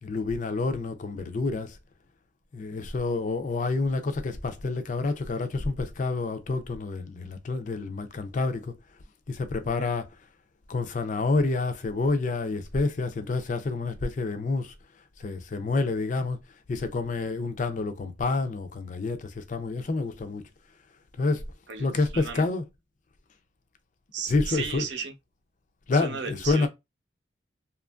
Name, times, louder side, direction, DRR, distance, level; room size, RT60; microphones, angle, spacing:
voice 1, 0.0-1.8 2.5-8.7 9.3-10.1 10.7-14.7 15.2-16.4 16.7-20.4 21.2-21.4 21.8-22.7 24.3-24.9 25.9-26.7, left 3 dB, 40° left, 0.4 m, -28 dB
voice 2, 21.7-22.4 24.1-25.1 25.9-26.7, right 6 dB, 65° right, 0.6 m, -35 dB
2.8 x 2.4 x 2.3 m
head